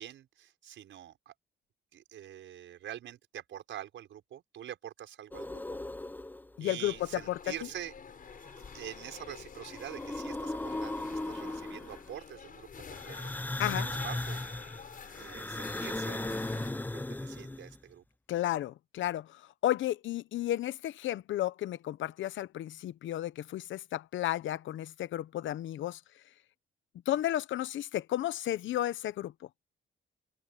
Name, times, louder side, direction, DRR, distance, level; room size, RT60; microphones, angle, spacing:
voice 1, 0.0-1.3 1.9-5.6 6.6-7.9 8.7-13.1 13.4-14.4 15.2-18.0, right 11 dB, 75° right, 5.6 m, -45 dB
sound 1, 5.3-6.6 8.3-9.2 9.6-12.1 12.9-17.8, left 2 dB, 10° left, 0.7 m, -37 dB
voice 2, 6.6-6.9 7.3-7.4 13.6-13.9 18.3-19.3 19.6-26.0 27.1-29.3, left 13 dB, 75° left, 1.0 m, -33 dB
sound 2, 6.8-16.7, left 6 dB, 45° left, 6.1 m, -49 dB
cardioid pair, 90°, 20 cm